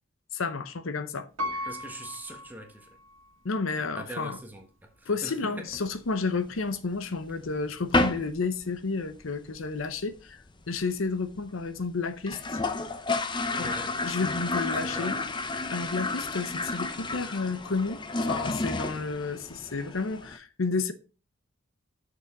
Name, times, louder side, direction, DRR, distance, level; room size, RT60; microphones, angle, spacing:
voice 1, 0.3-1.3 1.5-1.7 3.4-4.4 5.1-12.6 13.6-13.7 14.0-15.2 15.7-20.9, left 4 dB, 70° left, 0.8 m, -31 dB
Piano, 1.4-3.4 3.9-4.0, left 1 dB, 80° right, 2.0 m, -37 dB
voice 2, 1.6-2.9 4.0-5.8 13.6-14.0 14.8-15.2, right 1 dB, 10° right, 1.3 m, -42 dB
sound 1, 5.7-6.8 7.2-7.3 7.5-7.6 7.9-8.4 8.6-8.7 9.0-9.1 9.4-9.9 10.2-10.3 10.5-10.6 10.8-10.9 11.4-11.5 11.8-11.9 12.2-20.4, left 2 dB, 20° left, 0.6 m, -31 dB
6.7 x 6.2 x 4.9 m
head